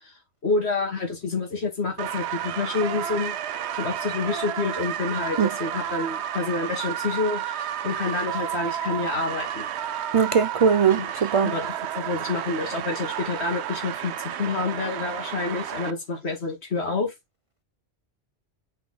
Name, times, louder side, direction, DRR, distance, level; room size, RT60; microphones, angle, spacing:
voice 1, 0.4-3.4 3.8-9.7 10.9-11.1 11.4-17.1, left 3 dB, 70° left, 2.4 m, -28 dB
sound 1, 2.0-15.9, right 10 dB, 80° right, 0.9 m, -31 dB
voice 2, 10.1-11.5, right 6 dB, 60° right, 0.3 m, -20 dB
5.4 x 4.5 x 4.0 m
omnidirectional pair, 1.1 m